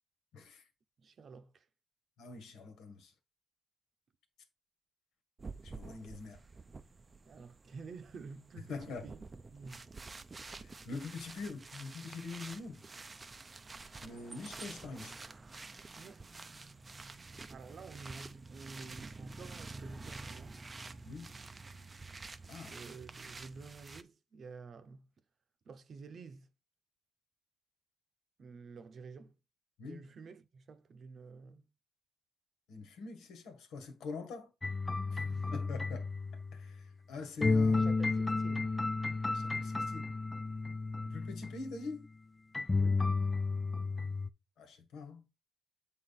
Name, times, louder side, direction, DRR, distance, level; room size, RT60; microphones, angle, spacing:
voice 1, 0.3-0.7 2.2-3.1 5.6-6.4 8.7-9.1 10.5-12.8 14.0-15.2 21.0-21.3 22.5-22.8 29.8-30.1 32.7-34.5 35.1-36.1 36.5-37.9 39.3-40.1 41.0-42.1 44.6-45.2, left 4 dB, 85° left, 1.8 m, -44 dB
voice 2, 1.0-1.7 7.2-9.2 9.5-9.9 15.9-16.3 17.5-20.6 22.7-25.1 25.6-26.5 28.4-29.4 29.8-31.7 35.3-35.5 37.1-37.2 37.7-38.8 42.8-43.1, right 4 dB, 50° right, 0.9 m, -50 dB
sound 1, 5.4-24.0, right 3 dB, 25° right, 0.6 m, -49 dB
sound 2, 34.6-36.8 37.4-41.7 42.5-44.3, left 3 dB, 20° left, 0.4 m, -32 dB
7.8 x 3.8 x 4.1 m
cardioid pair, 90°, 0 cm